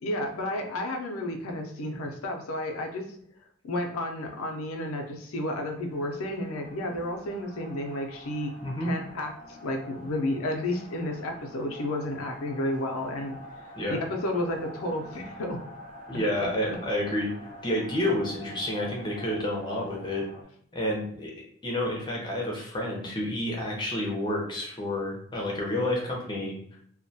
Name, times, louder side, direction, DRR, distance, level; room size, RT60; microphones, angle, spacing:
voice 1, 0.0-3.0 3.6-8.5 8.8-13.4 13.9-15.6, left 1 dB, 85° left, 3 dB, 0.5 m, -32 dB
sound 1, 5.8-20.4, left 1 dB, 40° right, 0.6 m, -47 dB
voice 2, 8.6-8.9 13.8-14.0 16.1-20.3 20.7-21.3 21.6-26.8, left 1 dB, 20° left, -1 dB, 0.5 m, -30 dB
2.2 x 2.1 x 2.6 m, 0.67 s
head